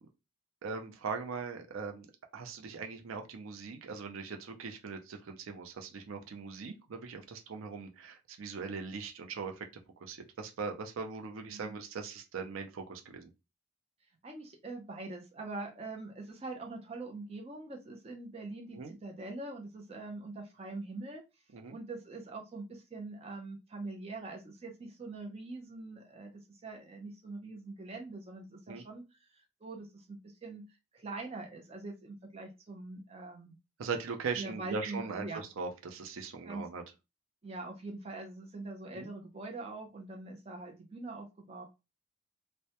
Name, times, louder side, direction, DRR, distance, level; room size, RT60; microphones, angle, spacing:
voice 1, 0.6-2.1 2.3-9.7 10.0-13.3 18.7-18.9 21.5-21.7 28.7-28.8 33.8-36.8 38.9-39.1, right 5 dB, 85° right, 0.5 m, -40 dB
voice 2, 11.3-11.8 14.2-21.2 21.7-26.3 26.6-30.7 30.9-33.6 34.4-35.4 36.4-36.6 37.4-41.6, right 3 dB, 30° right, 0.5 m, -43 dB
2.1 x 2.0 x 2.8 m
head